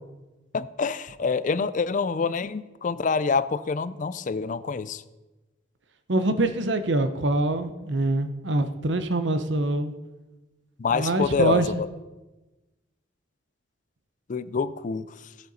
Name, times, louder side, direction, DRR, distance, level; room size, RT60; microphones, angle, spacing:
voice 1, 0.5-5.0 10.8-11.7 14.3-15.1, left 5 dB, 40° left, 15 dB, 0.4 m, -26 dB
voice 2, 6.1-9.9 10.9-11.7, right 2 dB, 70° right, 9 dB, 0.9 m, -24 dB
16.0 x 7.9 x 4.1 m, 1.1 s
head